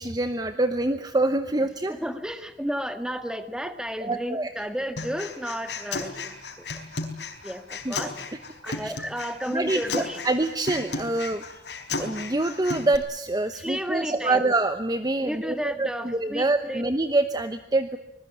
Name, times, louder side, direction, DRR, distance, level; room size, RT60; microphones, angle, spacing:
voice 1, 0.0-1.9 4.0-4.5 7.8-7.9 8.7-8.9 9.5-11.4 11.9-18.0, right 2 dB, 20° right, 9 dB, 1.0 m, -26 dB
voice 2, 1.9-6.7 7.4-8.2 8.6-10.2 13.5-14.4 15.2-16.8, equal, 5° right, 9 dB, 1.8 m, -32 dB
Human voice, 5.0-13.0, left 3 dB, 70° left, 4.3 m, -34 dB
25.5 x 21.0 x 8.8 m, 0.83 s
head